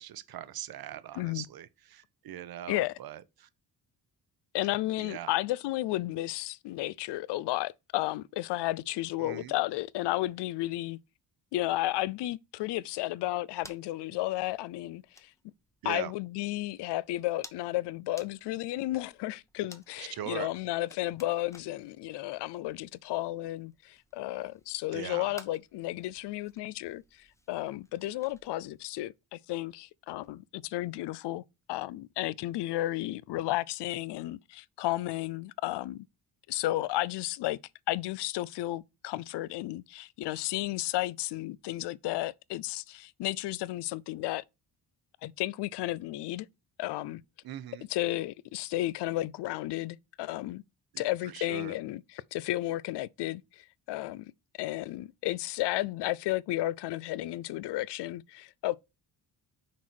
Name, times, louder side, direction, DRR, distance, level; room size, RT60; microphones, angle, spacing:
voice 1, 0.0-3.5 5.0-5.3 9.2-9.5 15.8-16.1 20.0-20.5 24.9-25.3 47.4-47.8 50.9-51.7, right 11 dB, 65° right, 0.8 m, -41 dB
voice 2, 1.1-1.5 2.7-2.9 4.5-11.0 11.5-15.3 15.8-31.4 31.7-36.1 36.5-37.6 37.9-44.4 45.2-46.5 46.8-47.2 47.9-50.6 51.0-54.3 54.6-58.8, left 16 dB, 85° left, 0.5 m, -33 dB
sound 1, 13.4-28.8, left 1 dB, 5° left, 0.8 m, -57 dB
6.0 x 4.3 x 4.4 m
cardioid pair, 110°, 40 cm